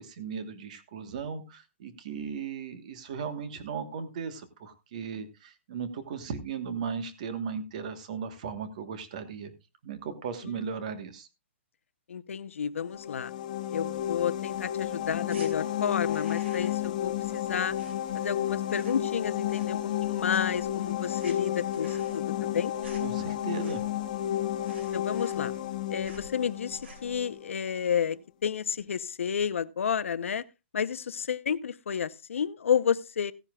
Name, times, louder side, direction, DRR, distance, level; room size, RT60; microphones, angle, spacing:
voice 1, 0.0-9.5 9.8-11.3 23.0-23.8, right 6 dB, 35° right, 1.4 m, -37 dB
voice 2, 12.1-13.3 13.7-17.8 18.1-22.7 24.9-25.5 25.9-30.4 30.7-33.3, left 7 dB, 80° left, 0.9 m, -31 dB
sound 1, 12.8-27.5, left 12 dB, 35° left, 1.0 m, -32 dB
sound 2, 15.2-15.5 15.9-16.9 17.2-18.4 18.6-19.1 19.4-20.0 20.3-24.1 24.3-24.4 24.6-25.7 26.0-26.3 26.7-27.2, right 2 dB, 65° right, 5.5 m, -51 dB
16.5 x 10.0 x 2.4 m
hypercardioid pair, 180°, 7 cm